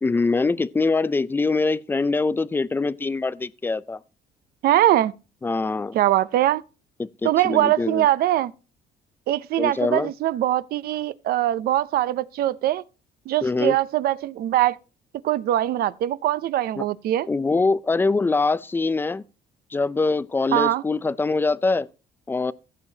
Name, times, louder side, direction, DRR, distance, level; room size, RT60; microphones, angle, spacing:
voice 1, 0.0-4.0 5.4-6.0 7.0-8.0 9.6-10.1 13.4-13.8 16.8-16.9 17.3-19.2 19.7-21.9 22.3-22.5, left 3 dB, 10° left, 0.4 m, -23 dB
voice 2, 4.6-5.1 5.9-6.6 7.2-8.5 9.3-12.8 13.3-14.8 15.2-17.3 20.5-20.8, right 13 dB, 65° right, 0.5 m, -22 dB
16.0 x 7.1 x 2.7 m
cardioid pair, 110°, 17 cm